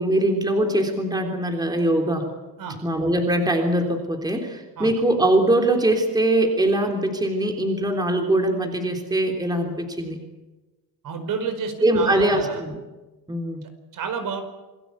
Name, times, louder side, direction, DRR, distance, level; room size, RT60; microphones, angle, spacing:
voice 1, 0.0-2.3 2.8-10.2 11.8-12.8 13.3-13.6, right 1 dB, 10° right, 3 dB, 3.5 m, -22 dB
voice 2, 11.0-12.6 13.9-14.4, right 5 dB, 50° right, 7 dB, 4.9 m, -30 dB
28.0 x 20.0 x 8.4 m, 1.1 s
cardioid pair, 130°, 40 cm